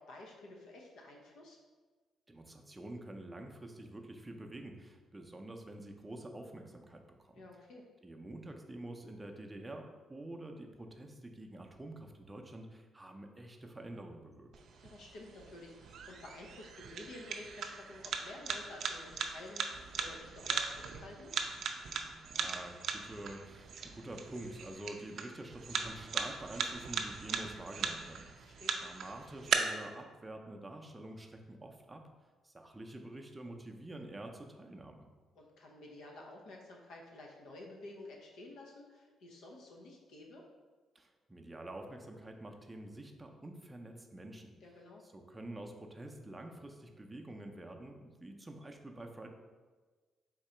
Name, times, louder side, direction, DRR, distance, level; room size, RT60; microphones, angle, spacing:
voice 1, 0.0-1.6 7.3-7.8 14.8-21.3 28.4-28.8 35.4-40.4 44.6-45.0, left 2 dB, 80° left, -1 dB, 0.6 m, -51 dB
voice 2, 2.3-7.4 8.0-14.5 22.1-28.5 28.8-32.1 32.4-35.1 40.9-44.6 45.0-49.3, right 1 dB, 15° right, 3 dB, 0.5 m, -47 dB
sound 1, 14.5-29.5, right 6 dB, 65° right, 0.4 m, -39 dB
3.7 x 2.8 x 4.3 m, 1.4 s
cardioid pair, 90°, 0 cm